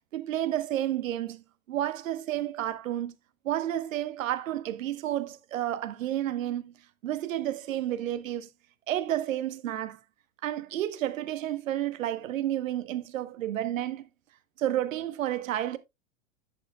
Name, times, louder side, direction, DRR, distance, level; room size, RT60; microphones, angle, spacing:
voice 1, 0.1-3.1 3.4-6.7 7.0-8.5 8.9-10.0 10.4-14.1 14.6-15.8, right 12 dB, 75° right, 1.1 m, -31 dB
11.0 x 8.1 x 2.3 m
hypercardioid pair, 100°, 40 cm